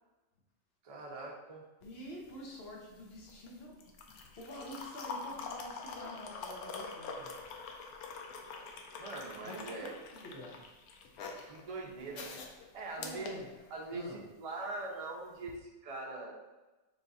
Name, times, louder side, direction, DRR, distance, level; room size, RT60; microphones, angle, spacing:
voice 1, 0.8-1.6 9.0-10.0 11.4-12.4 12.7-13.3 13.7-16.4, right 3 dB, 45° right, -1 dB, 0.4 m, -42 dB
sound 1, 1.8-14.1 15.4-15.6, left 4 dB, 85° left, 1.1 m, -46 dB
voice 2, 1.8-7.4 7.7-7.9 9.4-10.6 13.0-13.5 13.9-14.2, equal, 50° left, -2 dB, 1.0 m, -48 dB
3.9 x 2.4 x 3.9 m, 1.1 s
omnidirectional pair, 1.5 m